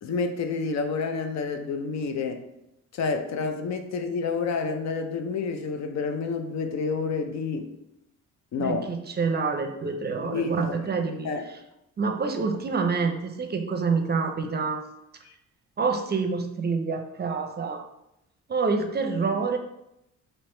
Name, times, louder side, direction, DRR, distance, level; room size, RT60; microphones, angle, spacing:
voice 1, 0.0-2.4 2.9-7.7 8.5-8.9 10.2-10.9 11.2-11.4 15.3-15.4, left 4 dB, 60° left, 0.6 m, -29 dB
voice 2, 8.6-11.3 12.0-14.8 15.8-17.9 18.5-19.6, right 4 dB, 35° right, 0.5 m, -27 dB
3.4 x 3.0 x 4.3 m
cardioid pair, 90°, 30 cm